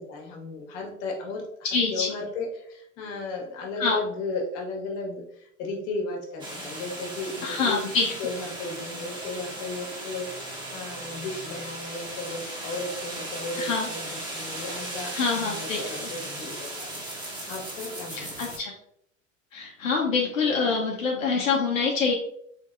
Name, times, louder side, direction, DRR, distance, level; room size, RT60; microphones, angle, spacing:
voice 1, 0.0-1.5 1.9-7.8 8.2-18.5, left 3 dB, 50° left, 1 dB, 1.3 m, -35 dB
voice 2, 1.6-2.1 3.8-4.0 7.4-8.1 13.6-13.9 15.1-16.1 18.1-18.7 19.5-22.1, left 4 dB, 80° left, -1 dB, 0.8 m, -26 dB
sound 1, 6.4-18.6, right 1 dB, 10° right, 1.1 m, -37 dB
3.9 x 3.4 x 2.4 m, 0.71 s
hypercardioid pair, 90°, 39 cm